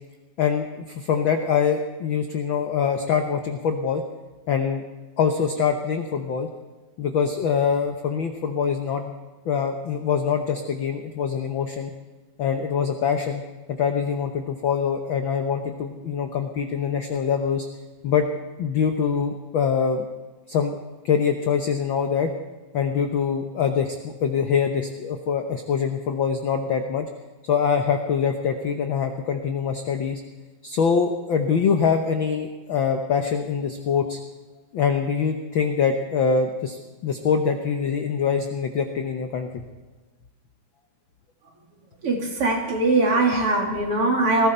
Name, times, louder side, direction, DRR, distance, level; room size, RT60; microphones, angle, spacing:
voice 1, 0.4-4.0 4.5-4.8 5.2-6.5 7.0-9.1 9.4-11.9 12.4-13.4 13.7-17.7 18.0-18.2 18.6-20.0 20.5-20.7 21.0-22.3 22.7-27.1 27.4-30.2 30.6-34.2 34.7-39.6, left 6 dB, 65° left, 5 dB, 1.2 m, -24 dB
voice 2, 42.0-44.5, right 2 dB, 50° right, 0 dB, 3.3 m, -21 dB
18.5 x 15.5 x 4.4 m, 1.3 s
omnidirectional pair, 3.4 m